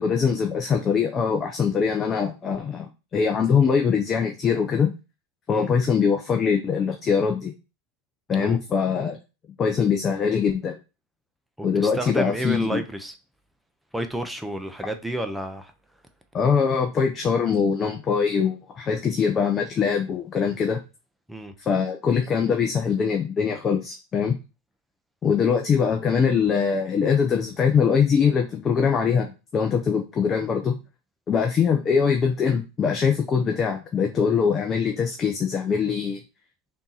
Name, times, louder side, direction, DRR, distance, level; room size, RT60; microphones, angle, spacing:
voice 1, 0.0-4.9 5.5-7.5 8.3-9.2 9.6-10.8 11.6-12.8 16.3-20.8 21.7-24.3 25.2-29.3 29.5-30.8 31.3-36.2, left 6 dB, 30° left, 0.7 m, -22 dB
voice 2, 11.8-13.1 13.9-15.7 21.3-21.5, right 1 dB, 5° right, 0.6 m, -30 dB
3.6 x 2.8 x 4.0 m
hypercardioid pair, 100°, 0 cm